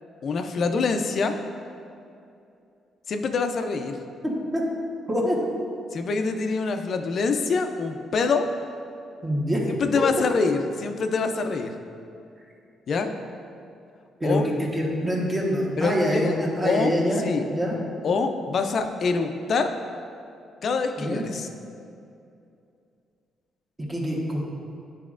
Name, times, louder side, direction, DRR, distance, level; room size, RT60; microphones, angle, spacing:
voice 1, 0.2-1.4 3.1-4.0 5.9-8.5 9.7-11.7 12.9-13.1 14.2-14.5 15.8-16.4 16.6-17.0 17.2-17.4 18.0-19.7 20.6-21.5, left 4 dB, 55° left, 6 dB, 0.4 m, -25 dB
voice 2, 9.2-9.6 9.9-10.0 14.2-17.8 21.0-21.2 23.8-24.4, equal, 20° right, -2 dB, 1.2 m, -25 dB
9.2 x 4.1 x 2.5 m, 2.6 s
cardioid pair, 90°, 0 cm